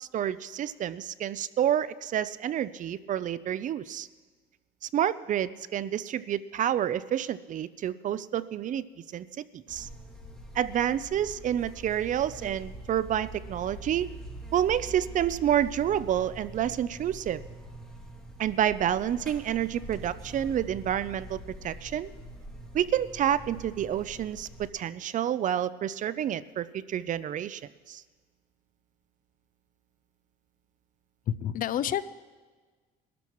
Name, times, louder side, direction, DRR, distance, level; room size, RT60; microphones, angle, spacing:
voice 1, 0.0-4.1 4.9-8.8 9.1-9.3 9.5-9.9 10.5-14.1 14.5-17.4 18.4-21.4 21.6-22.1 22.7-24.5 24.7-27.6 27.9-28.0, right 10 dB, 50° right, 16 dB, 0.5 m, -29 dB
Buzz, 9.7-24.7, right 1 dB, 5° left, 2.7 m, -44 dB
voice 2, 31.3-32.0, left 10 dB, 55° left, 16 dB, 0.5 m, -28 dB
22.0 x 13.0 x 3.1 m, 1.4 s
cardioid pair, 110°, 17 cm